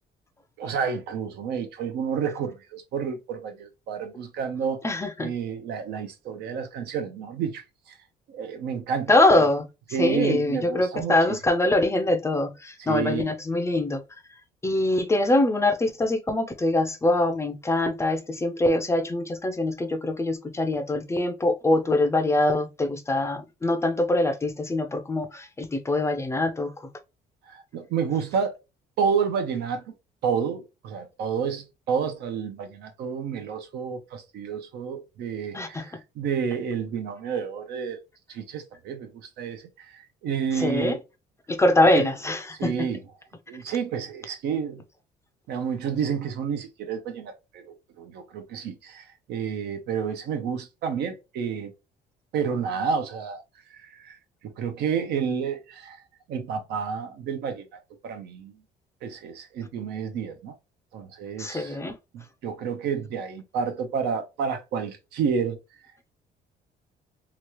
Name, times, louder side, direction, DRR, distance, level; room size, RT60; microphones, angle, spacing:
voice 1, 0.6-4.9 5.2-7.6 8.3-9.1 9.9-11.4 12.8-13.3 27.5-28.6 29.0-29.9 30.2-38.0 38.3-41.0 41.9-42.1 42.6-43.0 43.5-44.8 45.5-51.7 52.3-53.4 53.7-54.2 54.4-56.0 56.3-57.6 58.0-58.5 59.0-60.5 60.9-61.8 62.1-65.6, right 6 dB, 75° right, 0.7 m, -30 dB
voice 2, 4.8-5.3 9.1-9.7 10.0-14.0 14.6-26.7 35.5-35.9 40.5-41.0 41.5-42.7 61.4-61.9, left 2 dB, 15° left, 0.5 m, -23 dB
3.0 x 2.3 x 3.0 m
cardioid pair, 110°, 17 cm